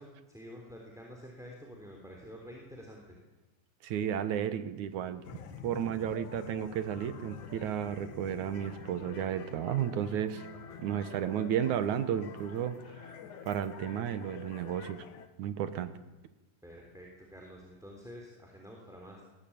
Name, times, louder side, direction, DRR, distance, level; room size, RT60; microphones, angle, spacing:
voice 1, 0.0-3.2 16.6-19.2, equal, ahead, 0 dB, 3.0 m, -49 dB
voice 2, 3.8-5.2 5.6-10.5 10.8-13.2 13.4-15.1 15.4-15.9, right 9 dB, 70° right, 12 dB, 2.4 m, -33 dB
sound 1, 5.2-15.3, left 8 dB, 70° left, 2.8 m, -49 dB
sound 2, 7.3-14.1, left 5 dB, 85° left, 5.3 m, -53 dB
21.0 x 18.5 x 8.7 m, 1.1 s
omnidirectional pair, 3.8 m